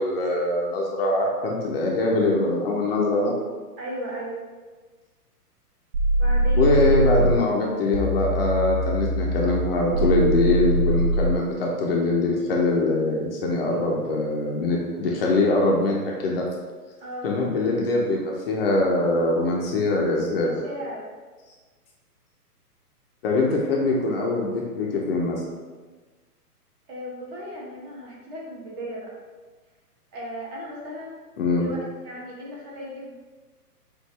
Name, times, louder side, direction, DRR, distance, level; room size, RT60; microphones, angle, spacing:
voice 1, 0.0-3.3 6.6-16.5 17.2-18.2 18.5-20.5 23.2-25.4 31.4-31.7, left 2 dB, 40° left, -2 dB, 0.7 m, -23 dB
voice 2, 3.8-4.4 6.1-6.7 17.0-17.4 20.4-21.1 26.9-29.2 30.1-31.2 31.5-33.1, equal, 25° right, -4 dB, 1.1 m, -36 dB
sound 1, 5.9-7.4 7.9-11.4, right 1 dB, 75° right, 1.0 m, -22 dB
6.5 x 2.6 x 3.1 m, 1.3 s
hypercardioid pair, 145°, 47 cm